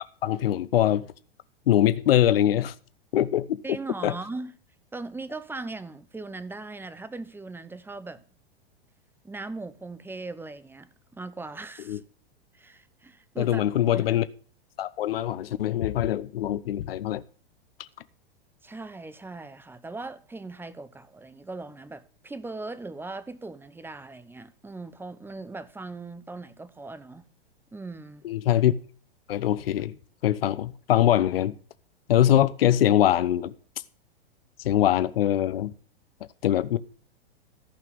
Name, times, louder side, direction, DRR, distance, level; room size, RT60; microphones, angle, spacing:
voice 1, 0.2-1.1 1.7-2.7 3.1-3.6 4.0-4.1 11.9-12.0 13.4-14.3 14.8-17.2 28.2-28.7 29.3-29.9 30.2-31.5 32.1-33.5 34.6-35.7 36.4-36.8, left 12 dB, 70° left, 0.9 m, -23 dB
voice 2, 3.6-4.6 4.9-8.2 9.2-12.0 12.5-13.6 13.9-14.1 18.6-27.2 27.7-28.2, right 3 dB, 5° right, 1.0 m, -39 dB
14.5 x 5.9 x 8.6 m
hypercardioid pair, 105°, 30 cm